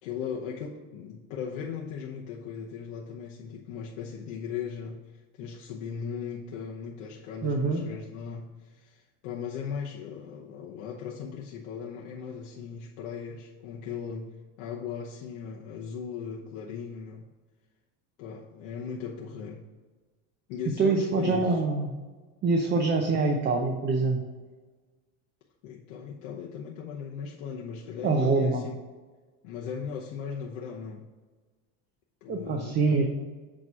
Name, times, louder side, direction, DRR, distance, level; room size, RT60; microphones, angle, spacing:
voice 1, 0.0-5.0 5.3-14.3 14.6-17.3 18.2-19.6 20.5-21.6 25.6-28.8 29.4-31.0 32.2-32.8, left 6 dB, 80° left, -3 dB, 1.1 m, -38 dB
voice 2, 7.4-7.8 20.8-21.9 22.4-24.2 28.0-28.6 32.3-33.1, right 3 dB, 30° right, 2 dB, 0.7 m, -25 dB
8.7 x 3.1 x 6.1 m, 1.3 s
cardioid pair, 150°, 37 cm